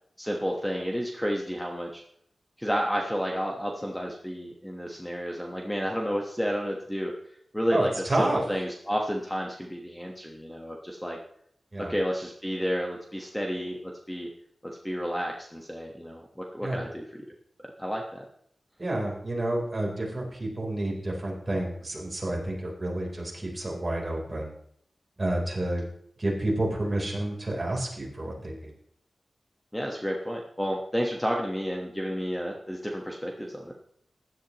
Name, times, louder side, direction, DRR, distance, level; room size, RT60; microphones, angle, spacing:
voice 1, 0.2-2.0 2.6-7.1 7.5-7.9 8.2-11.2 11.8-14.3 14.6-17.2 17.6-18.2 29.7-33.7, equal, 5° left, 0 dB, 1.3 m, -31 dB
voice 2, 7.7-8.4 11.7-11.9 16.6-16.8 18.8-24.5 25.2-25.8 26.2-28.7, right 1 dB, 30° right, -2 dB, 3.8 m, -29 dB
15.5 x 11.0 x 3.1 m, 0.69 s
wide cardioid pair, 105°, 0 cm